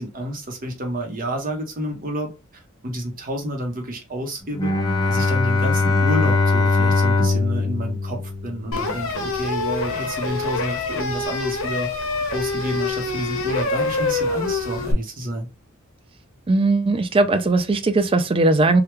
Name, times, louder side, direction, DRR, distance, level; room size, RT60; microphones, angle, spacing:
voice 1, 0.0-2.3 2.8-4.7 5.1-11.9 12.3-15.5, equal, 40° right, 0.9 m, -29 dB
Bowed string instrument, 4.6-8.9, left 3 dB, 20° left, 0.6 m, -20 dB
sound 1, 8.7-14.9, left 3 dB, 80° left, 0.8 m, -25 dB
voice 2, 16.5-18.8, right 2 dB, 25° right, 0.3 m, -18 dB
3.3 x 2.3 x 2.9 m
head